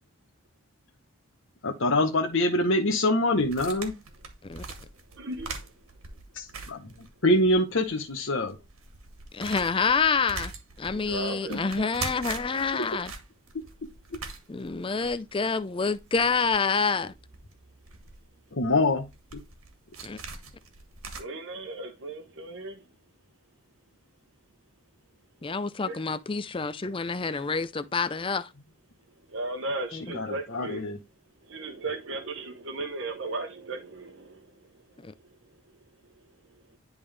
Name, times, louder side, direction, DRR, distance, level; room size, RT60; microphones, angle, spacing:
voice 1, 1.6-3.9 6.3-6.9 7.2-8.6 11.5-11.6 18.5-19.0 29.9-31.0, left 1 dB, 60° left, 0.9 m, -25 dB
sound 1, 3.4-7.5 7.8-7.9 8.4-21.2, right 4 dB, 75° right, 1.6 m, -42 dB
voice 2, 5.2-5.5 11.0-11.6 21.2-22.8 25.8-26.0 29.3-30.8 31.5-34.4, right 2 dB, 55° right, 0.9 m, -35 dB
voice 3, 9.3-10.5 10.8-13.1 14.5-17.1 20.0-20.2 25.4-28.5 29.9-30.0 35.0-35.1, left 5 dB, 25° left, 0.4 m, -27 dB
10.5 x 3.6 x 3.3 m
head